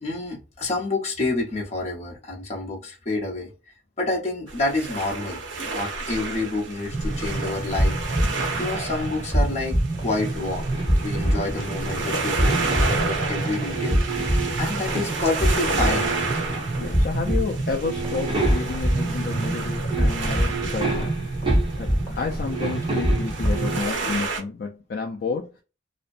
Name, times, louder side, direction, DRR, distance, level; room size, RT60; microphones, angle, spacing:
voice 1, 0.0-3.5 4.0-5.4 5.7-7.9 8.6-10.6 11.0-16.1, left 2 dB, 35° left, 0.8 m, -28 dB
sound 1, 4.5-24.4, right 3 dB, 85° right, 0.7 m, -31 dB
sound 2, 6.9-23.8, right 1 dB, 10° left, 1.1 m, -26 dB
sound 3, 10.7-13.1 13.6-15.2 15.4-16.9 17.3-17.5 17.8-19.0 19.6-19.7 19.9-22.0 22.3-23.9, right 3 dB, 25° right, 1.1 m, -32 dB
voice 2, 16.8-21.1 21.8-25.5, left 4 dB, 50° left, 0.3 m, -30 dB
2.5 x 2.1 x 2.5 m
head